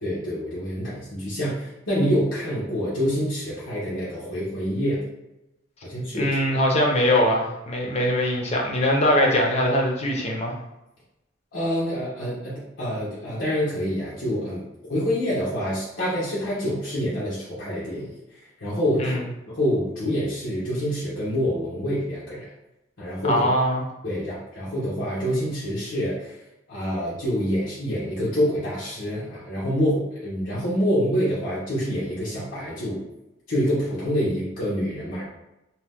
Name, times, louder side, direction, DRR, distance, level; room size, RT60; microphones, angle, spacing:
voice 1, 0.0-5.0 5.8-6.3 11.5-19.2 19.5-22.5 23.0-23.4 24.0-26.4 26.7-33.0 33.5-35.2, equal, 85° left, -9 dB, 0.9 m, -26 dB
voice 2, 6.1-10.5 19.0-19.2 23.3-23.8, left 1 dB, 35° left, -1 dB, 0.6 m, -22 dB
2.8 x 2.1 x 3.4 m, 0.95 s
head